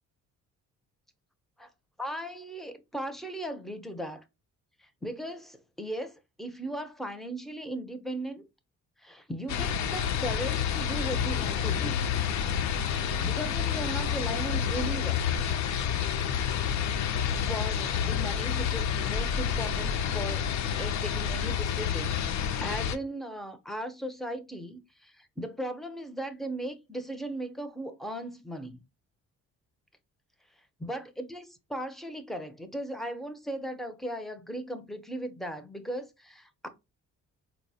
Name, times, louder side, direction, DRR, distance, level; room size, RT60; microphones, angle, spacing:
voice 1, 2.0-4.2 4.8-6.1 6.4-8.4 9.0-12.0 13.2-15.2 17.4-20.5 20.8-22.1 22.6-28.8 30.8-36.7, right 1 dB, ahead, 0.5 m, -37 dB
sound 1, 9.5-23.0, left 8 dB, 65° left, 0.5 m, -29 dB
4.1 x 2.0 x 2.6 m
cardioid pair, 90°, 30 cm